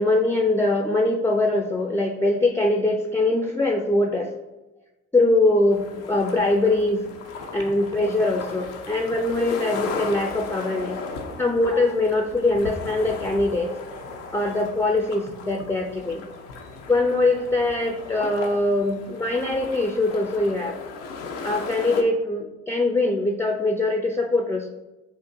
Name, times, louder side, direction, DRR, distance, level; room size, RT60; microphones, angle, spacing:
voice 1, 0.0-4.3 5.1-7.1 7.5-11.0 11.4-13.7 14.3-16.3 16.9-20.8 21.4-24.7, left 2 dB, 5° left, 2 dB, 0.5 m, -22 dB
sound 1, 5.7-22.0, left 4 dB, 85° left, 0.6 m, -36 dB
6.9 x 2.5 x 2.6 m, 1.1 s
hypercardioid pair, 40°, 37 cm